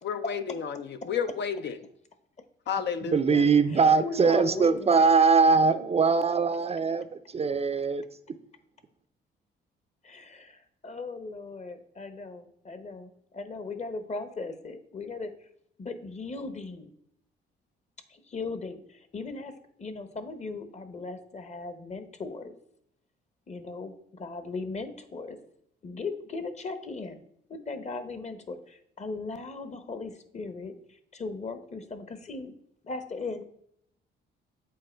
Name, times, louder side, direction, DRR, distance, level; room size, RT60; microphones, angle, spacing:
voice 1, 0.0-1.8 2.7-3.4, left 7 dB, 60° left, 9 dB, 0.6 m, -31 dB
voice 2, 3.1-7.1 7.3-8.0, right 5 dB, 30° right, 11 dB, 0.5 m, -22 dB
voice 3, 3.7-5.2 10.0-15.3 15.8-16.9 18.1-19.5 19.8-22.5 23.5-25.4 25.8-27.2 27.5-32.6 32.8-33.4, left 3 dB, 35° left, 10 dB, 1.0 m, -38 dB
7.6 x 4.4 x 4.4 m, 0.72 s
cardioid pair, 90°, 20 cm